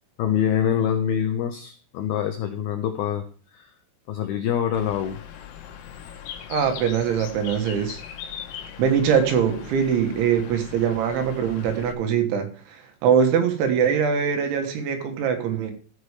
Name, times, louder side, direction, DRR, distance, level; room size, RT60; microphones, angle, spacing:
voice 1, 0.2-3.3 3.5-3.7 4.1-5.2, left 9 dB, 90° left, 6 dB, 2.1 m, -25 dB
Bird, 4.7-11.9, left 9 dB, 75° left, 3.6 m, -40 dB
voice 2, 6.5-8.0 8.8-15.7, right 7 dB, 75° right, 6 dB, 3.6 m, -22 dB
15.0 x 6.0 x 4.9 m, 0.42 s
omnidirectional pair, 5.7 m